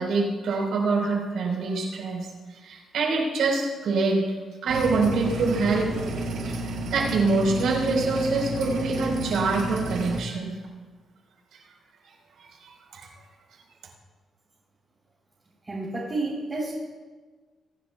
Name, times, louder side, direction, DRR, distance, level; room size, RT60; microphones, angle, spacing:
voice 1, 0.0-2.3 2.6-4.2 4.6-5.9 6.4-10.5 12.4-13.1, right 3 dB, 75° right, -1 dB, 4.1 m, -25 dB
sound 1, 4.7-10.2, right 2 dB, 90° right, 2.4 m, -31 dB
voice 2, 15.7-16.7, right 2 dB, 25° right, -7 dB, 3.4 m, -30 dB
23.0 x 11.0 x 2.3 m, 1.4 s
cardioid pair, 115°, 0 cm